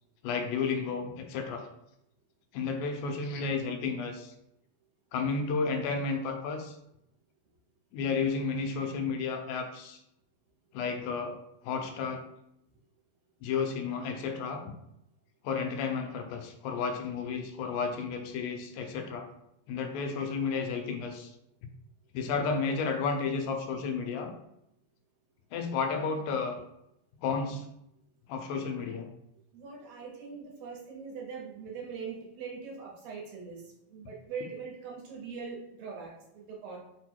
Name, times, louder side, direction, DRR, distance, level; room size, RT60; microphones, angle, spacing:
voice 1, 0.2-1.7 2.5-4.3 5.1-6.8 7.9-10.0 10.7-11.4 11.6-12.2 13.4-14.7 15.4-19.3 19.7-21.3 22.1-24.3 25.5-26.6 27.2-27.6 28.3-29.2, left 5 dB, 90° left, 5 dB, 2.1 m, -32 dB
voice 2, 29.5-33.6 33.9-36.8, right 5 dB, 70° right, -2 dB, 1.8 m, -42 dB
4.8 x 2.2 x 4.3 m, 0.79 s
omnidirectional pair, 3.4 m